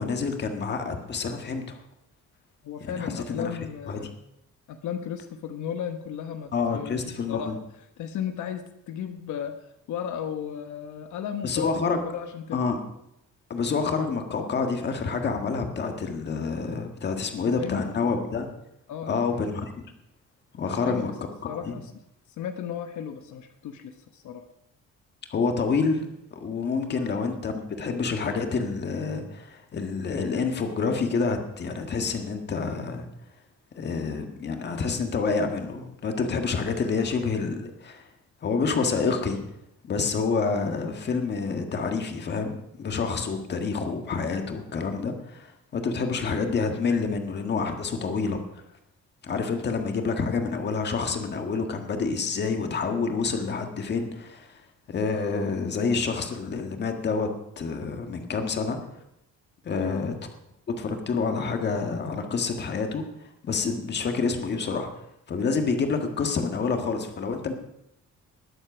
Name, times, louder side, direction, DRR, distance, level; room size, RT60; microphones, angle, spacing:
voice 1, 0.0-1.8 2.9-3.5 3.9-4.1 6.5-7.6 11.4-12.0 12.5-12.8 13.5-18.5 19.1-19.6 20.5-21.1 21.6-21.7 25.3-26.0 26.3-33.0 33.7-38.1 38.4-39.4 39.8-48.4 49.2-54.6 54.9-57.3 57.6-58.8 59.6-60.1 60.8-64.9 65.3-67.5, left 4 dB, 35° left, 5 dB, 1.7 m, -28 dB
voice 2, 2.6-4.1 4.7-7.0 7.3-7.6 8.0-11.7 12.0-12.6 17.3-17.9 18.9-19.5 20.6-21.1 21.4-21.9 22.4-24.4 27.0-27.1 59.7-60.1, left 8 dB, 75° left, 7 dB, 1.1 m, -35 dB
20.0 x 7.9 x 6.1 m, 0.83 s
cardioid pair, 180°, 30 cm